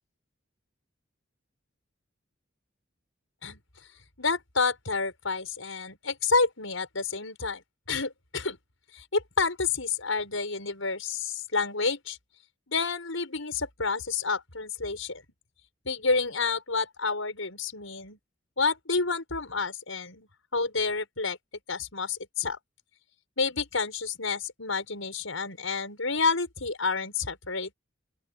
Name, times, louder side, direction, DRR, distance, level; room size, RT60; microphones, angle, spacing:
voice 1, 4.2-8.6 8.9-12.2 12.7-15.2 15.8-18.2 18.6-21.4 21.7-22.6 23.4-27.7, left 4 dB, 85° left, 6.3 m, -29 dB
open air
head